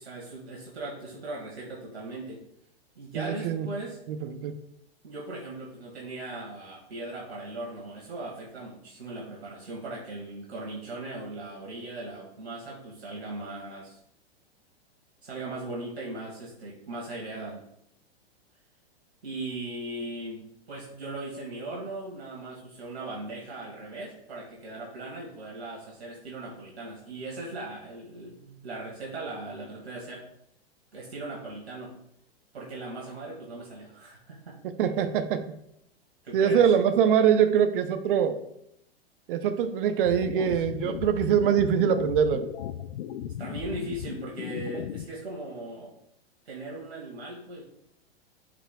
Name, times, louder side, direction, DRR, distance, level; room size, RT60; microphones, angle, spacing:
voice 1, 0.0-2.4 3.0-4.0 5.0-14.0 15.2-17.6 19.2-30.2 30.9-31.9 32.5-34.6 36.2-36.7 43.4-45.9 46.5-47.6, right 2 dB, 85° right, -4 dB, 1.9 m, -38 dB
voice 2, 3.2-3.7 4.1-4.5 34.8-35.5 36.3-38.4 39.3-42.4, right 8 dB, 55° right, 10 dB, 0.8 m, -23 dB
sound 1, 40.1-45.1, left 10 dB, 70° left, 0.5 m, -36 dB
9.9 x 4.9 x 2.3 m, 0.76 s
hypercardioid pair, 105°, 31 cm